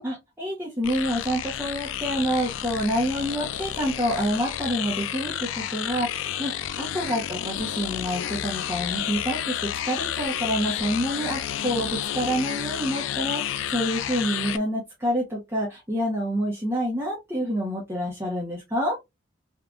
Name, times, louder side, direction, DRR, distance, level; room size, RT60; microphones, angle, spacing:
voice 1, 0.0-9.6 9.8-19.0, equal, 15° right, 0.9 m, -28 dB
sound 1, 0.8-14.6, left 11 dB, 85° left, 0.3 m, -31 dB
3.6 x 2.5 x 2.4 m
head